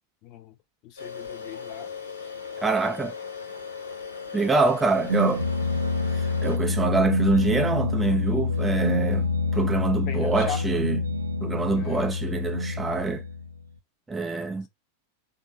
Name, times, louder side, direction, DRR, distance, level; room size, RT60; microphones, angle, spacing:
voice 1, 0.2-0.5 0.8-1.9 2.2-2.3 10.0-10.7 11.8-12.1, left 9 dB, 40° left, 0.9 m, -38 dB
sound 1, 1.0-6.6, left 5 dB, 75° left, 1.5 m, -38 dB
voice 2, 2.6-3.1 4.3-5.4 6.4-9.3 9.5-11.0 11.4-13.2 14.1-14.7, right 3 dB, 10° right, 0.6 m, -25 dB
sound 2, 4.9-13.7, left 3 dB, 80° right, 0.6 m, -27 dB
3.6 x 2.8 x 4.5 m
figure-of-eight pair, 90°, 0 cm